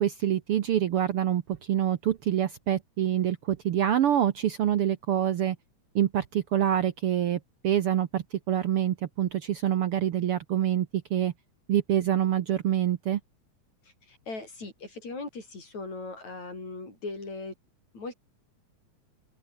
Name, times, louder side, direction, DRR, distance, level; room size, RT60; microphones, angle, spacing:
voice 1, 0.0-5.6 5.9-11.3 11.7-13.2, right 11 dB, 65° right, 1.6 m, -26 dB
voice 2, 13.8-17.5 17.9-18.2, left 3 dB, 65° left, 9.4 m, -39 dB
omnidirectional pair, 3.4 m